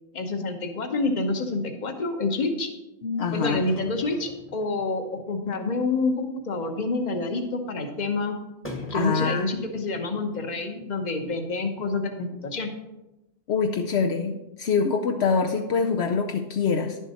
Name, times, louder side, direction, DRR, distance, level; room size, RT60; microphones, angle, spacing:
voice 1, 0.1-2.7 3.3-8.4 8.9-12.7, left 3 dB, 45° left, 6 dB, 1.1 m, -28 dB
voice 2, 3.0-3.7 8.9-9.5 13.5-17.0, left 5 dB, 70° left, 3 dB, 0.9 m, -25 dB
sound 1, 3.3-5.3 5.6-5.7 6.0-6.1 6.4-6.7 7.0-7.1 8.6-10.5 10.8-10.9 11.3-11.4 11.8-11.9, left 1 dB, 10° left, 1.0 m, -42 dB
10.5 x 7.2 x 4.2 m, 0.99 s
omnidirectional pair, 1.2 m